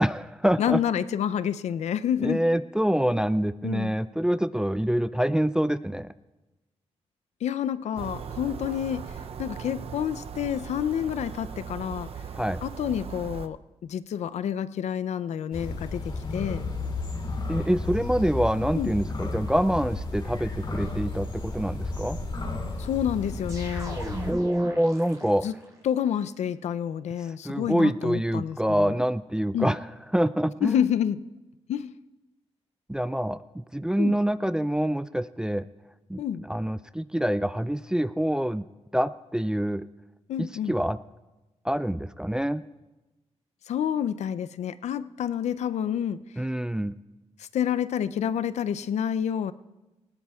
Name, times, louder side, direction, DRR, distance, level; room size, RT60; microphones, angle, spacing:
voice 1, 0.0-0.8 2.2-6.1 12.3-12.6 17.5-22.2 24.2-25.5 27.4-29.8 30.1-30.9 32.9-35.7 36.1-38.7 38.9-39.9 40.4-41.0 41.6-42.6 46.4-47.0, equal, 5° right, 14 dB, 0.3 m, -26 dB
voice 2, 0.6-2.4 3.6-3.9 7.4-9.1 9.4-12.1 12.6-13.6 13.8-16.6 18.7-18.9 22.8-24.0 25.4-25.5 25.8-29.0 29.5-29.7 30.6-31.2 31.7-31.9 34.0-34.1 36.2-36.4 40.3-40.7 43.7-46.2 47.4-49.5, left 9 dB, 80° left, 14 dB, 0.5 m, -28 dB
sound 1, 8.0-13.5, right 7 dB, 60° right, 0.5 m, -39 dB
sound 2, 15.5-24.3, left 2 dB, 45° left, 2.6 m, -33 dB
sound 3, 23.5-25.7, right 2 dB, 30° right, 3.9 m, -37 dB
19.0 x 17.0 x 2.3 m, 1.1 s
cardioid pair, 80°, 11 cm